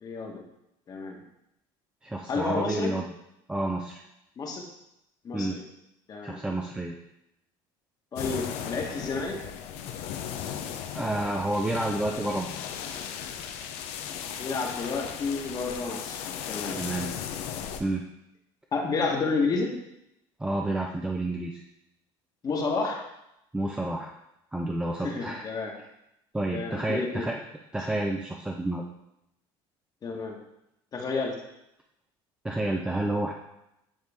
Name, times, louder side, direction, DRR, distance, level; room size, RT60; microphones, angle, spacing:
voice 1, 0.0-0.4 0.9-1.2 2.3-2.9 4.4-4.6 5.2-5.6 6.1-6.4 8.1-9.4 14.4-16.2 16.5-16.8 18.7-19.7 22.4-23.0 25.0-25.7 26.5-27.3 30.0-30.4 30.9-31.3, left 4 dB, 35° left, 1 dB, 1.3 m, -30 dB
voice 2, 2.0-3.0 3.5-4.0 5.3-5.6 6.2-6.9 10.9-12.6 16.8-17.1 17.8-18.0 20.4-21.6 23.5-24.1 24.5-25.5 26.3-27.4 27.7-28.8 32.4-33.3, right 2 dB, 10° right, 1 dB, 0.5 m, -29 dB
sound 1, 8.2-17.8, left 8 dB, 75° left, 0.6 m, -36 dB
9.1 x 3.2 x 3.5 m, 0.84 s
supercardioid pair, 100°, 11 cm